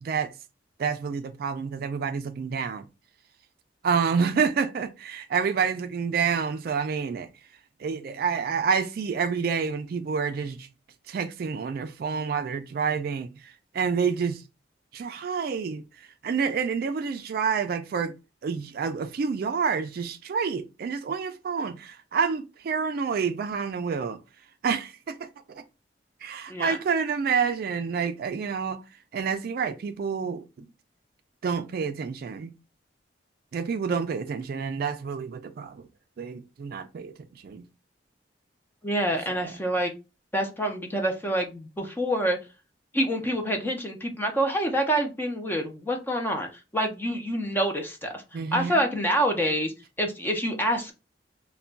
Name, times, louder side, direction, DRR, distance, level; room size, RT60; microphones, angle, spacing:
voice 1, 0.8-2.9 3.8-7.3 7.8-10.7 11.1-14.4 14.9-15.8 16.2-18.1 18.4-24.2 24.6-25.6 26.2-28.8 29.1-30.4 31.4-32.5 33.5-35.9 36.2-37.1 37.4-37.6 48.3-48.8, right 6 dB, 55° right, 0.3 m, -28 dB
voice 2, 38.8-39.9 40.3-42.4 42.9-48.2 48.5-49.7 50.0-50.9, equal, 10° left, 0.5 m, -27 dB
2.3 x 2.2 x 3.8 m
head